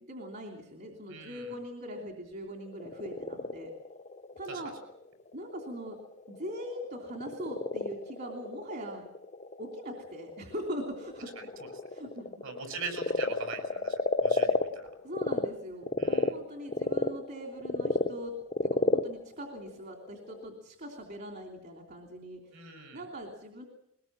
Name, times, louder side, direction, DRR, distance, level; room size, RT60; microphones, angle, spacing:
voice 1, 0.1-3.7 4.4-4.7 5.3-6.0 6.3-9.0 9.6-11.3 11.9-12.4 15.0-18.3 18.6-23.6, equal, 50° right, 2 dB, 3.2 m, -41 dB
voice 2, 1.1-1.5 4.5-4.6 11.4-11.5 12.4-14.9 16.0-16.3 22.5-23.0, right 4 dB, 70° right, 5 dB, 7.1 m, -42 dB
Frog, 2.6-15.5 15.8-20.5, left 2 dB, 35° left, 0.8 m, -32 dB
22.0 x 20.5 x 7.5 m, 0.78 s
head